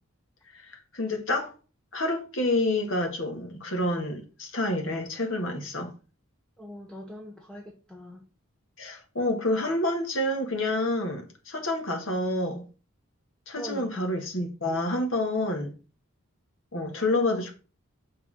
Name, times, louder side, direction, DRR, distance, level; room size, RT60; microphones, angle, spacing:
voice 1, 0.5-1.5 1.9-5.9 8.8-12.6 13.5-15.7 16.7-17.5, left 1 dB, 65° left, 1.6 m, -28 dB
voice 2, 6.6-8.3 13.5-14.2, equal, 5° left, 0.7 m, -42 dB
6.2 x 3.6 x 6.0 m
head